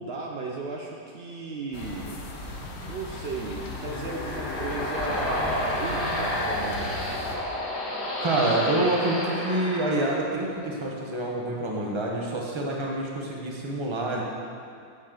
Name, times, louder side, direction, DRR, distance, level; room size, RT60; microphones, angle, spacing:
voice 1, 0.0-2.3 2.8-7.1, right 3 dB, 85° right, 0 dB, 0.5 m, -35 dB
sound 1, 1.7-7.4, left 2 dB, 50° left, 1.0 m, -37 dB
sound 2, 3.3-10.7, left 1 dB, 85° left, 2.0 m, -31 dB
voice 2, 8.2-14.2, right 2 dB, 25° right, -2 dB, 0.7 m, -27 dB
7.7 x 7.3 x 3.8 m, 2.3 s
omnidirectional pair, 1.7 m